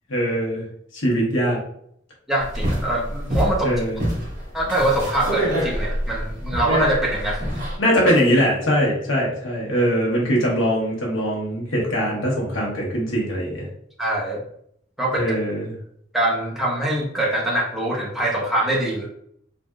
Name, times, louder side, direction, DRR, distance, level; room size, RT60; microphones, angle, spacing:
voice 1, 0.1-0.6 0.9-1.6 3.6-4.0 7.8-13.7 15.1-15.7, equal, 85° left, -3 dB, 1.1 m, -21 dB
voice 2, 2.3-3.7 4.5-7.6 14.0-14.4 15.0-15.3 16.1-19.1, right 1 dB, ahead, -5 dB, 0.7 m, -23 dB
sound 1, 2.4-7.8, equal, 45° right, 1.5 m, -25 dB
3.4 x 2.5 x 2.3 m, 0.68 s
head